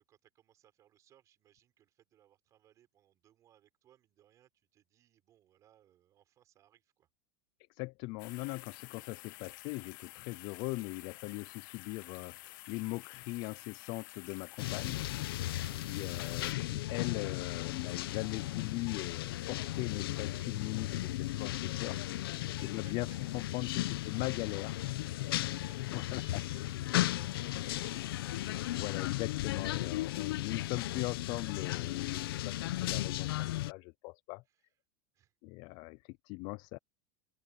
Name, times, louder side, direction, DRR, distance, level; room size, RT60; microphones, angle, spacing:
voice 1, 0.0-7.1 15.6-16.3 22.5-23.2 23.6-24.3 24.9-25.0 25.3-25.8 26.1-28.9 29.2-29.3 35.1-35.3, right 11 dB, 25° right, 5.4 m, -65 dB
voice 2, 7.8-15.0 15.9-23.1 23.3-24.7 25.5-25.6 25.9-26.4 28.5-34.4 35.4-36.8, left 23 dB, 40° left, 0.4 m, -40 dB
sound 1, 8.2-16.5, left 19 dB, 60° left, 1.2 m, -51 dB
sound 2, 14.6-33.7, left 15 dB, 85° left, 1.1 m, -36 dB
open air
supercardioid pair, 170°, 12 cm